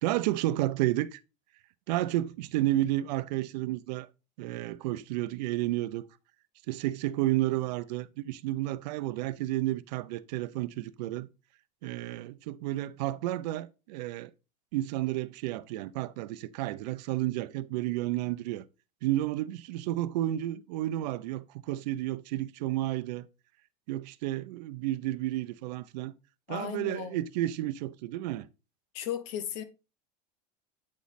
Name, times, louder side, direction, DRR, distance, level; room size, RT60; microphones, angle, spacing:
voice 1, 0.0-1.2 1.9-4.1 4.4-6.0 6.7-11.3 11.8-14.3 14.7-18.6 19.0-23.3 23.9-26.1 26.5-28.5, right 15 dB, 85° right, 0.5 m, -31 dB
voice 2, 26.5-27.2 28.9-29.6, left 9 dB, 55° left, 0.8 m, -35 dB
8.3 x 3.1 x 4.0 m
cardioid pair, 175°, 21 cm